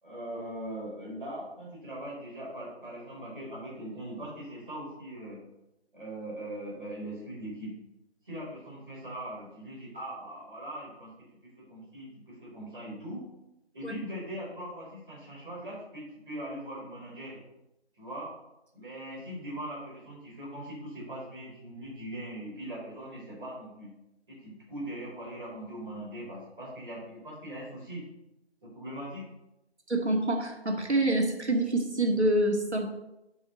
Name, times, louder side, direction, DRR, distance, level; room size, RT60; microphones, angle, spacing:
voice 1, 0.0-5.4 5.9-7.7 8.2-11.1 11.4-13.2 13.7-17.4 18.0-18.3 18.7-23.9 24.3-28.0 28.6-29.2, right 1 dB, 5° right, -21 dB, 1.3 m, -40 dB
voice 2, 29.9-32.9, right 1 dB, 85° right, 2 dB, 2.0 m, -26 dB
11.0 x 6.2 x 4.1 m, 0.93 s
figure-of-eight pair, 170°, 33 cm